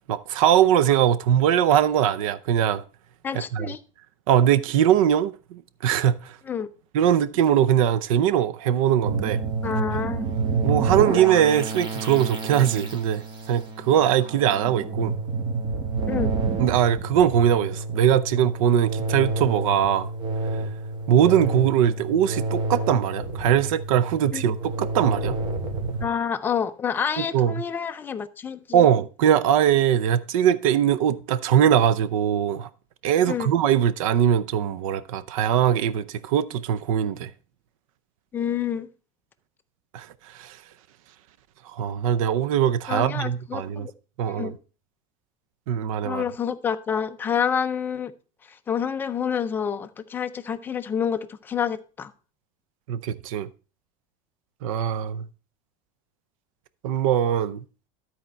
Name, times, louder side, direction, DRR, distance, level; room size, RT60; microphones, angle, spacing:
voice 1, 0.1-2.8 3.5-3.7 4.3-6.3 6.9-9.4 10.6-15.1 16.6-20.1 21.1-25.4 27.3-27.5 28.7-32.7 33.0-37.3 39.9-40.1 40.3-40.6 41.7-43.9 44.2-44.5 45.7-46.2 52.9-53.5 54.6-55.2 56.8-57.6, right 9 dB, 85° right, 0.6 m, -21 dB
voice 2, 3.2-3.8 6.4-6.7 9.6-10.3 16.1-16.3 24.3-24.4 26.0-28.9 33.3-33.6 38.3-38.9 42.9-43.9 44.3-44.6 46.0-48.1 48.5-52.1, left 7 dB, 10° left, 0.4 m, -28 dB
sound 1, 9.0-26.1, right 3 dB, 25° right, 1.0 m, -29 dB
12.5 x 4.3 x 4.3 m
supercardioid pair, 165°, 17 cm